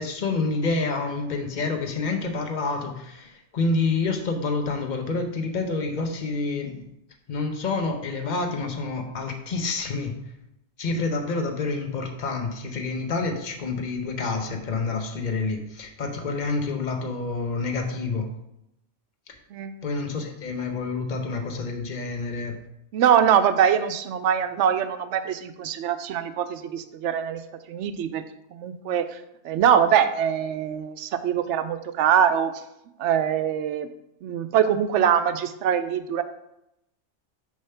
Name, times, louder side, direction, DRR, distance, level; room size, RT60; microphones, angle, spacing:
voice 1, 0.0-6.8 7.3-10.1 10.8-18.3 19.8-22.6, left 3 dB, 45° left, 4 dB, 0.9 m, -28 dB
voice 2, 19.5-19.8 22.9-27.4 27.7-28.2 28.5-29.1 29.4-32.5 33.0-33.9 34.2-36.2, right 8 dB, 85° right, 11 dB, 0.9 m, -23 dB
6.6 x 3.5 x 5.6 m, 0.83 s
omnidirectional pair, 1.2 m